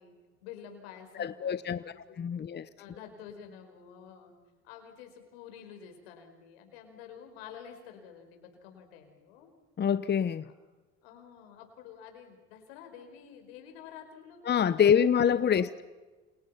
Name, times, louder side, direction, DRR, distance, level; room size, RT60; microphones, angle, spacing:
voice 1, 0.0-4.4 4.6-9.5 10.4-10.5 11.0-15.1 15.5-15.8, left 8 dB, 85° left, 4.9 m, -50 dB
voice 2, 1.2-1.8 2.2-2.7 9.8-10.4 14.5-15.8, left 8 dB, 35° left, 0.9 m, -25 dB
28.5 x 28.0 x 5.8 m
supercardioid pair, 70°, 30 cm